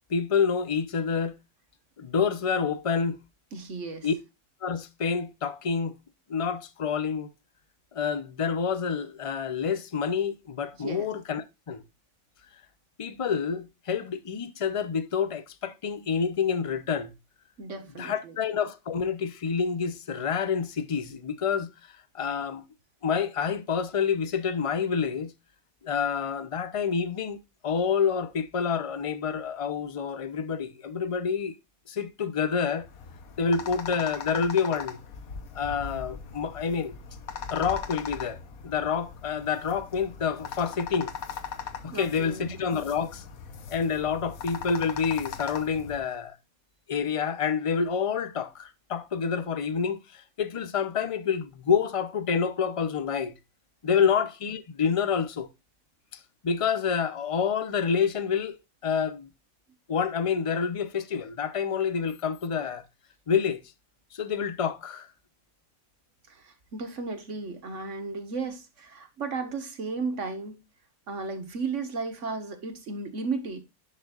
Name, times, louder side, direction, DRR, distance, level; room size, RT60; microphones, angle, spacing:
voice 1, 0.1-1.4 2.0-3.2 4.0-4.1 4.6-5.9 6.3-7.3 7.9-11.8 13.0-17.1 18.0-21.7 22.1-22.6 23.0-25.3 25.8-27.4 27.6-31.5 31.9-32.9 33.4-35.0 35.5-37.0 37.5-38.4 38.6-41.1 41.8-43.2 43.7-46.4 46.9-53.3 53.8-55.5 56.1-58.6 58.8-59.3 59.9-62.8 63.3-63.6 64.1-65.1, left 6 dB, 35° left, 0.6 m, -28 dB
voice 2, 3.5-4.1 10.8-11.1 17.6-18.4 41.9-42.5 54.0-54.1 66.3-70.6 71.1-73.6, right 4 dB, 60° right, 1.7 m, -34 dB
sound 1, 32.8-46.0, left 6 dB, 85° left, 1.4 m, -40 dB
10.5 x 5.4 x 2.4 m
omnidirectional pair, 1.5 m